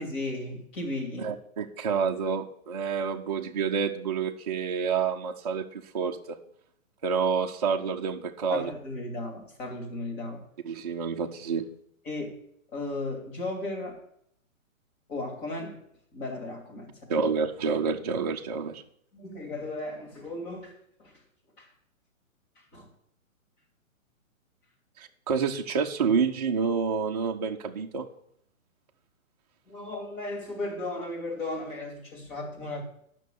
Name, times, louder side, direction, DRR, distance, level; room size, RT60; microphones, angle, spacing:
voice 1, 0.0-1.3 8.5-10.4 12.0-12.4 12.7-14.0 15.1-15.8 16.1-17.2 19.1-21.1 21.6-21.7 22.7-22.9 29.7-32.8, left 2 dB, 35° left, 2.8 m, -35 dB
voice 2, 1.2-6.4 7.0-8.7 10.6-11.7 17.1-18.8 25.0-28.1, right 6 dB, 30° right, 0.4 m, -28 dB
9.1 x 6.1 x 8.0 m
hypercardioid pair, 155°, 41 cm